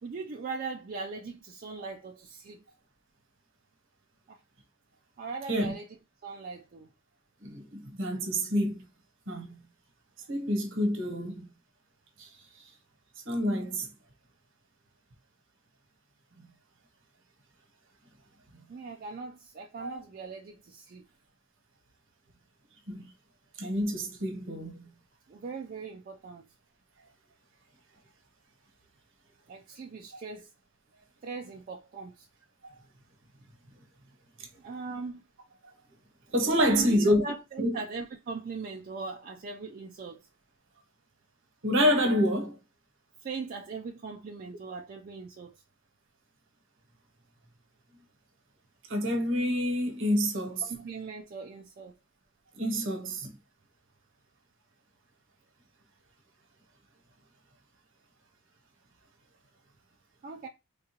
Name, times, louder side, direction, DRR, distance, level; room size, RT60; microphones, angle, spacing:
voice 1, 0.0-2.6 4.3-4.4 5.2-6.0 6.2-6.9 18.7-21.1 25.3-26.5 29.5-30.5 31.2-32.3 34.6-35.2 36.7-40.2 43.2-45.6 50.6-51.9 60.2-60.5, right 4 dB, 45° right, 0.4 m, -40 dB
voice 2, 7.4-8.8 9.3-9.5 10.3-11.4 12.2-12.3 13.3-13.9 19.8-20.0 22.9-23.0 23.6-24.8 36.3-37.2 37.6-37.8 41.6-42.6 48.9-50.6 52.6-53.3, equal, 65° right, 1.0 m, -27 dB
3.7 x 2.3 x 2.8 m
head